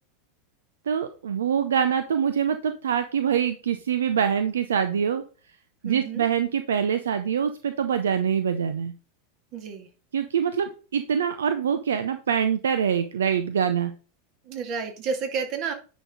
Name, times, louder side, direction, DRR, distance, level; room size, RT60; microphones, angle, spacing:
voice 1, 0.9-5.2 5.8-8.9 10.1-13.9, right 8 dB, 75° right, 9 dB, 0.6 m, -24 dB
voice 2, 5.8-6.2 9.5-9.9 14.5-15.7, right 5 dB, 45° right, 4 dB, 2.3 m, -30 dB
9.9 x 5.2 x 3.8 m, 0.36 s
hypercardioid pair, 90°, 0 cm